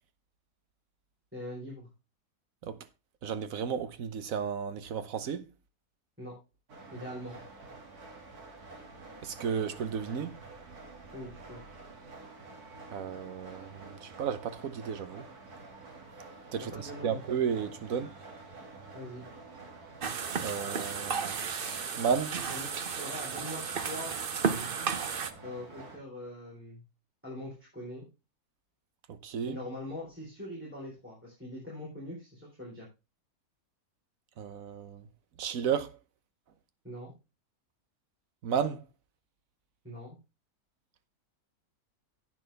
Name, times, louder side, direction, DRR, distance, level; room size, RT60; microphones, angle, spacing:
voice 1, 1.3-1.9 6.2-6.3 6.9-7.4 11.1-11.6 16.6-17.2 18.9-19.2 22.5-24.2 25.4-26.8 27.2-28.0 29.4-32.9 36.8-37.1 39.8-40.2, left 1 dB, 10° right, 4.0 m, -42 dB
voice 2, 3.2-5.5 9.2-10.4 12.9-15.2 16.5-18.1 20.4-21.4 22.0-22.3 29.2-29.6 34.4-35.1 35.4-35.9 38.4-38.8, right 7 dB, 65° right, 1.3 m, -33 dB
sound 1, 6.7-26.0, right 3 dB, 85° right, 2.8 m, -49 dB
sound 2, 20.0-25.3, right 6 dB, 45° right, 0.9 m, -33 dB
10.5 x 9.0 x 3.4 m
omnidirectional pair, 1.6 m